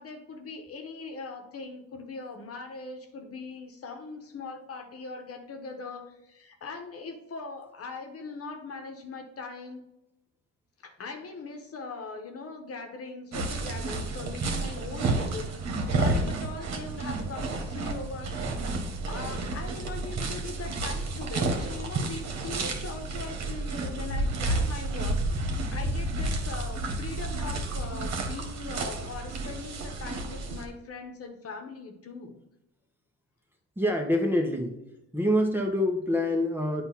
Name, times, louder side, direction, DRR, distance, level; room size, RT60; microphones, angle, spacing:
voice 1, 0.0-9.9 10.8-18.8 19.1-32.4, left 4 dB, 45° left, 5 dB, 1.3 m, -41 dB
sound 1, 13.3-30.7, right 2 dB, 55° right, 1.6 m, -31 dB
voice 2, 33.8-34.8 35.1-36.8, left 1 dB, 5° right, 2 dB, 1.2 m, -26 dB
8.1 x 2.9 x 5.8 m, 0.92 s
supercardioid pair, 80°, 33 cm